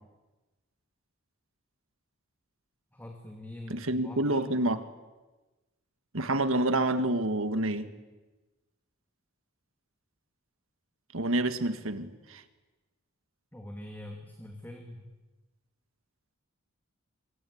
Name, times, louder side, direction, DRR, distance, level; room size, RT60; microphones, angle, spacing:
voice 1, 2.9-4.4 13.5-15.0, left 1 dB, 10° left, 3 dB, 2.5 m, -44 dB
voice 2, 3.7-4.8 6.1-7.9 11.1-12.4, right 1 dB, 65° right, 10 dB, 1.8 m, -28 dB
27.0 x 24.5 x 8.7 m, 1.2 s
head